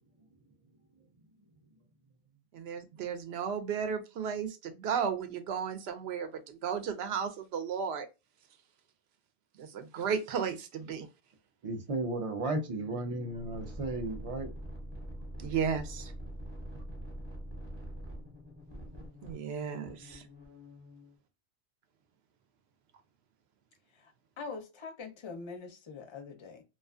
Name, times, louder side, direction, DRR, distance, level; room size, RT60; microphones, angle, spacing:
voice 1, 2.5-8.1 9.6-11.1 15.4-16.1 19.2-20.2, right 7 dB, 75° right, 0.8 m, -34 dB
voice 2, 11.6-14.5, right 2 dB, 50° right, 0.4 m, -34 dB
sound 1, 12.5-21.1, equal, 25° right, 0.8 m, -45 dB
voice 3, 24.4-26.6, left 4 dB, 35° left, 0.5 m, -43 dB
2.5 x 2.3 x 2.3 m
omnidirectional pair, 1.1 m